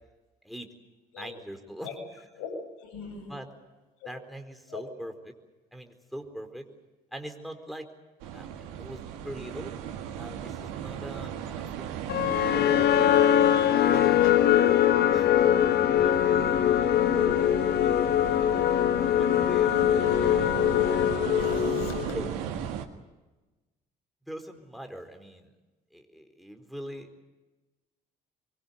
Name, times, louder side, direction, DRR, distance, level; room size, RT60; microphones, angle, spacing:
voice 1, 1.2-1.9 3.3-3.5 4.0-5.1 5.7-6.7 7.1-7.9 8.3-9.7 10.2-13.1 13.5-14.3 15.1-17.4 19.0-20.5 22.1-22.3 24.3-25.5 25.9-27.1, equal, ahead, 6 dB, 4.3 m, -42 dB
voice 2, 2.8-3.3 4.0-4.1 4.7-4.8 13.9-14.4 20.0-20.2 21.3-22.0, left 6 dB, 70° left, 4 dB, 7.8 m, -42 dB
sound 1, 8.2-22.9, right 9 dB, 75° right, 1.9 m, -37 dB
sound 2, 12.1-22.3, left 10 dB, 50° left, 1.0 m, -22 dB
24.0 x 23.0 x 8.3 m, 1.1 s
hypercardioid pair, 50°, 21 cm